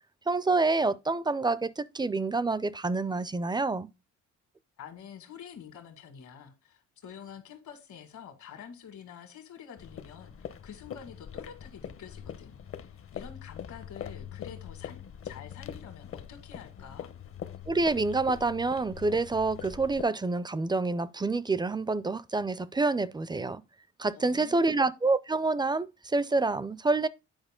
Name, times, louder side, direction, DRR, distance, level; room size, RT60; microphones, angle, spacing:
voice 1, 0.3-3.9 17.7-23.6 24.0-27.1, right 3 dB, 15° right, 0.4 m, -27 dB
voice 2, 4.8-17.1 24.1-24.8, left 7 dB, 75° left, 2.0 m, -48 dB
sound 1, 9.8-20.0, left 9 dB, 45° left, 0.7 m, -43 dB
8.9 x 4.7 x 3.6 m
cardioid pair, 90°, 30 cm